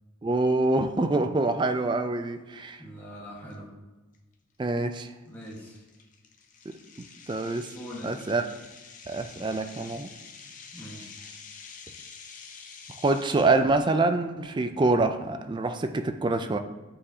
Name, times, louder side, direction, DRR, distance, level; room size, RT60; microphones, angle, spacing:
voice 1, 0.2-2.8 4.6-5.1 6.7-6.8 7.3-7.7 8.0-8.4 9.1-10.1 13.0-16.6, right 2 dB, 20° right, 7 dB, 0.3 m, -25 dB
voice 2, 2.8-3.7 5.2-5.8 7.7-8.2 10.7-11.2, equal, 10° left, -5 dB, 1.5 m, -42 dB
sound 1, 3.5-3.6 4.1-4.3 4.8-4.9 5.4-13.7, left 5 dB, 40° left, 0.6 m, -48 dB
8.7 x 4.7 x 2.8 m, 1.2 s
head